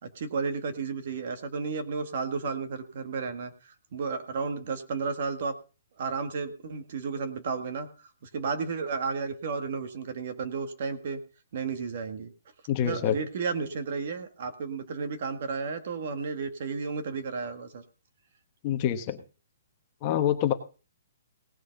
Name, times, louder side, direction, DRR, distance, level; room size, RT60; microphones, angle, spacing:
voice 1, 0.0-5.5 6.0-7.9 8.2-11.2 11.5-12.3 12.8-17.8, right 5 dB, 45° right, 8 dB, 1.7 m, -33 dB
voice 2, 12.7-13.2 18.6-19.2 20.0-20.5, left 10 dB, 25° left, 6 dB, 1.1 m, -26 dB
18.0 x 6.5 x 5.3 m, 0.33 s
hypercardioid pair, 170°, 0 cm